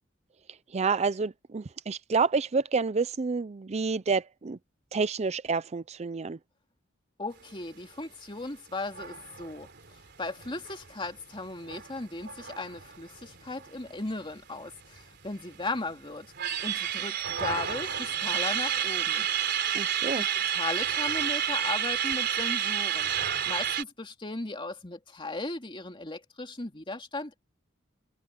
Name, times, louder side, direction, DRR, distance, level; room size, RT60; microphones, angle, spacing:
voice 1, 0.5-4.6 4.9-6.4 19.7-20.3, right 4 dB, 35° right, 0.5 m, -29 dB
voice 2, 7.2-9.7 10.2-16.3 16.6-19.3 20.2-23.1 23.5-27.4, left 2 dB, 25° left, 2.6 m, -37 dB
sound 1, 8.9-14.0 14.3-14.4 14.7-15.6 16.1-23.8, right 9 dB, 60° right, 3.5 m, -30 dB
head